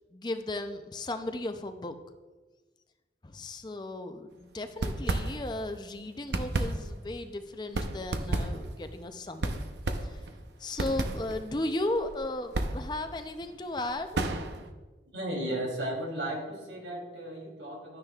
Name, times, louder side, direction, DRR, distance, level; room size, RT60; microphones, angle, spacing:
voice 1, 0.0-2.0 3.2-9.5 10.0-10.3 10.6-14.2, left 2 dB, 25° left, 8 dB, 0.5 m, -35 dB
sound 1, 4.7-5.8 6.1-14.7, right 2 dB, 70° right, 0.7 m, -33 dB
voice 2, 15.1-18.0, right 1 dB, 90° right, -1 dB, 3.0 m, -35 dB
12.0 x 9.8 x 2.4 m, 1.3 s
head